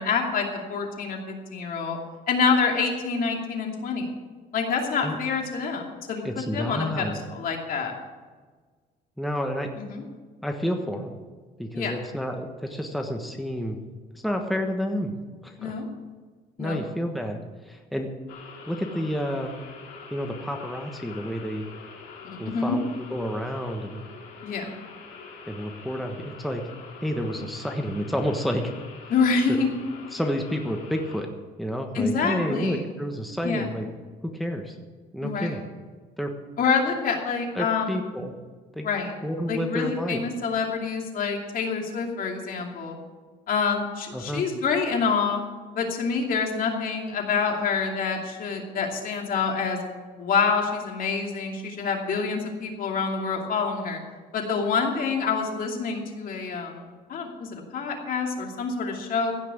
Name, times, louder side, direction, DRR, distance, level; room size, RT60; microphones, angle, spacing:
voice 1, 0.0-2.0 2.3-4.1 4.5-7.9 9.8-10.0 11.7-11.9 15.6-15.9 16.6-16.8 22.2-22.8 24.4-24.7 29.1-29.7 31.9-32.8 33.4-33.7 35.2-35.6 36.6-38.0 38.8-39.1 39.5-43.0 43.5-45.5 45.7-49.8 50.2-54.0 54.3-59.3, left 5 dB, 55° left, 2 dB, 2.6 m, -27 dB
voice 2, 6.2-7.2 9.2-9.7 10.4-11.1 11.6-13.8 14.1-15.1 15.4-15.7 16.6-18.1 18.7-19.5 20.1-21.7 22.4-24.0 25.5-26.6 27.0-28.6 29.5-29.6 30.1-31.3 31.6-33.9 34.3-34.8 35.1-35.6 36.2-36.3 37.5-38.3 38.7-38.9 39.2-40.2 44.1-44.4, equal, ahead, 3 dB, 1.2 m, -30 dB
Frog Chorus, 18.3-31.2, left 5 dB, 90° left, 3.2 m, -45 dB
16.0 x 5.9 x 8.6 m, 1.4 s
cardioid pair, 110°, 17 cm